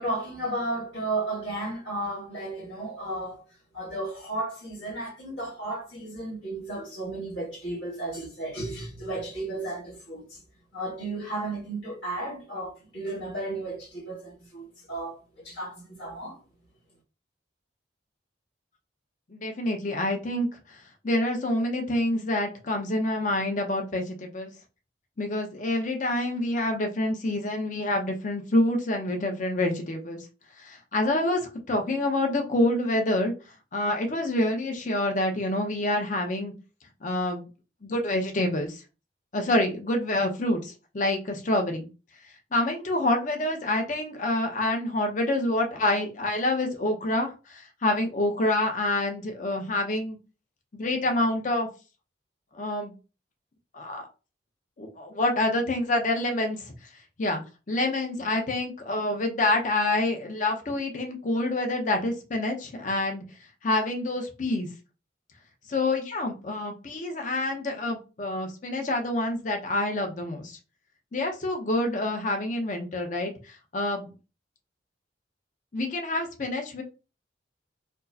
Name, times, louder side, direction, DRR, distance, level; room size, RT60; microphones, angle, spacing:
voice 1, 0.0-3.4 3.7-10.4 10.7-16.4, right 2 dB, 80° left, 1.8 m, -34 dB
voice 2, 19.3-20.5 21.0-24.5 25.2-30.2 30.6-33.3 33.7-36.5 37.0-37.5 37.8-38.8 39.3-41.9 42.5-50.2 50.7-51.7 52.5-52.9 53.7-54.1 54.8-56.6 57.2-57.4 57.7-63.2 63.6-64.7 65.7-70.6 71.1-73.3 73.7-74.1 75.7-76.8, left 1 dB, 45° left, 0.7 m, -27 dB
4.4 x 2.0 x 2.7 m
head